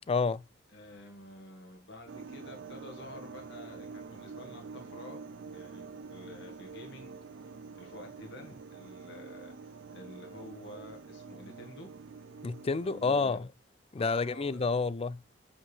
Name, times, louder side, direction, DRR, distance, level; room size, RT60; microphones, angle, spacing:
voice 1, 0.1-0.4 12.4-13.4 13.9-15.2, left 4 dB, 30° left, 0.4 m, -29 dB
voice 2, 0.7-5.2 5.5-7.1 7.7-11.9 12.8-13.4 14.0-14.6, left 1 dB, 60° left, 1.4 m, -49 dB
sound 1, 2.1-13.3, right 4 dB, 65° right, 0.4 m, -47 dB
7.4 x 5.1 x 3.2 m
head